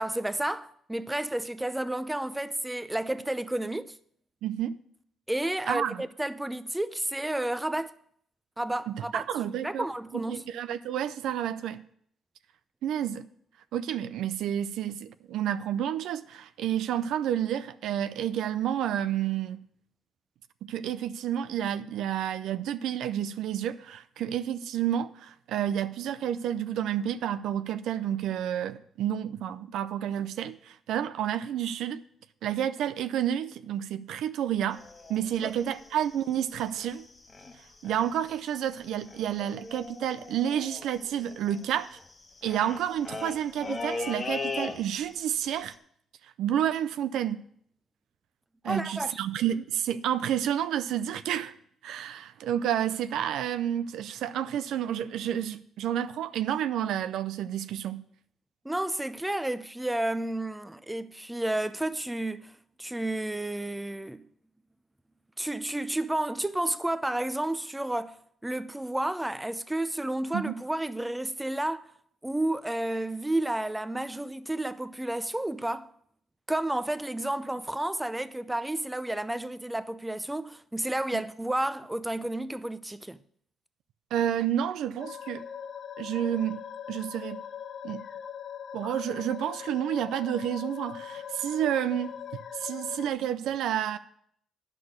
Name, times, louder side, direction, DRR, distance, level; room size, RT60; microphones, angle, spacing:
voice 1, 0.0-3.9 5.3-8.0 8.6-9.3 9.6-10.4 35.4-35.5 48.6-49.2 58.6-62.5 62.8-64.3 65.4-68.2 68.4-71.9 72.2-75.9 76.5-83.2, right 1 dB, 10° right, 0.6 m, -31 dB
voice 2, 4.4-4.8 5.7-6.0 8.9-9.9 10.1-11.8 12.8-13.3 13.7-19.7 20.6-32.0 32.4-34.8 35.1-37.1 37.8-42.0 42.4-45.8 46.2-47.5 48.6-51.5 51.8-58.0 70.3-70.5 81.1-81.2 84.1-85.5 86.0-86.6 86.9-87.4 87.8-88.1 88.7-92.1 92.5-94.0, right 10 dB, 80° right, 0.5 m, -30 dB
sound 1, 34.7-37.0 37.3-37.6 37.8-38.3 38.6-38.7 38.8-45.2 45.5-45.7, left 3 dB, 30° left, 1.3 m, -38 dB
sound 2, 85.0-93.1, left 8 dB, 55° left, 0.6 m, -41 dB
9.6 x 6.2 x 8.0 m
cardioid pair, 90°, 0 cm